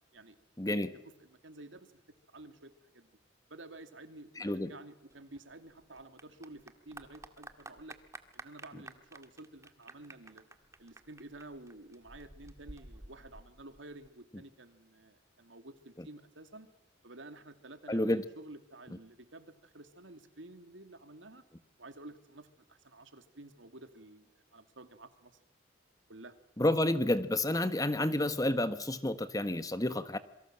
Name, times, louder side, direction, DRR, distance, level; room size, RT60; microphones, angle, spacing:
voice 1, 0.6-0.9 4.4-4.7 17.9-18.2 26.6-30.2, left 1 dB, 20° left, 1.4 m, -30 dB
voice 2, 1.2-1.9 2.3-3.1 3.5-8.0 8.3-10.4 10.8-16.7 17.0-21.4 21.8-25.4 26.1-26.3 27.5-27.8, right 2 dB, 85° right, 2.6 m, -51 dB
Clapping / Applause, 5.1-14.1, right 2 dB, 15° right, 1.7 m, -52 dB
27.5 x 23.5 x 7.6 m
head